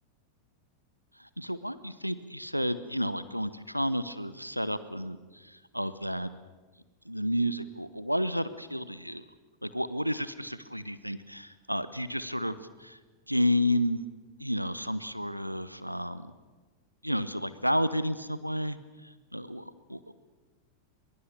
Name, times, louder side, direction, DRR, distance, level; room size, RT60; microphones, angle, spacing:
voice 1, 1.2-6.3 7.1-9.2 9.6-13.0 13.3-14.0 14.4-16.3 17.0-20.1, equal, 90° right, 15 dB, 0.9 m, -31 dB
22.5 x 22.5 x 6.8 m, 1.3 s
figure-of-eight pair, 90°, 0 cm